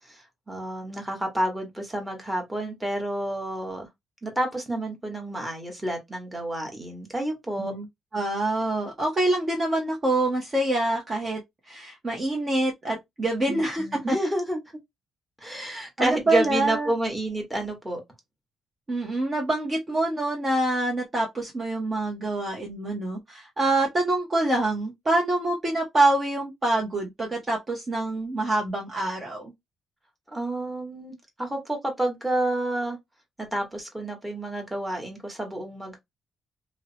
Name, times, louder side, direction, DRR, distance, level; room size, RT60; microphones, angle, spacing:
voice 1, 0.1-3.9 4.2-7.7 13.5-14.6 15.4-18.0 30.3-33.0 33.5-36.0, right 1 dB, 10° right, 1.2 m, -29 dB
voice 2, 8.1-11.4 11.7-14.2 16.0-16.9 18.9-29.5, right 2 dB, 30° right, 0.7 m, -26 dB
2.7 x 2.0 x 2.7 m
cardioid pair, 90°, 0 cm